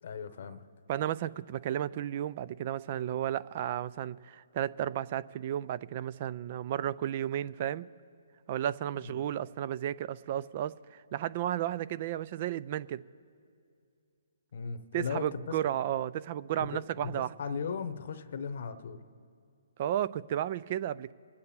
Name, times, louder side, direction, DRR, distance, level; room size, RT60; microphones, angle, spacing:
voice 1, 0.0-0.6 9.0-9.1 14.5-15.6 16.6-19.0, left 6 dB, 60° left, 12 dB, 0.8 m, -37 dB
voice 2, 0.9-7.9 8.5-13.0 14.9-17.4 19.8-21.1, right 11 dB, 40° right, 18 dB, 0.3 m, -33 dB
24.0 x 8.5 x 4.3 m, 2.3 s
hypercardioid pair, 150°, 0 cm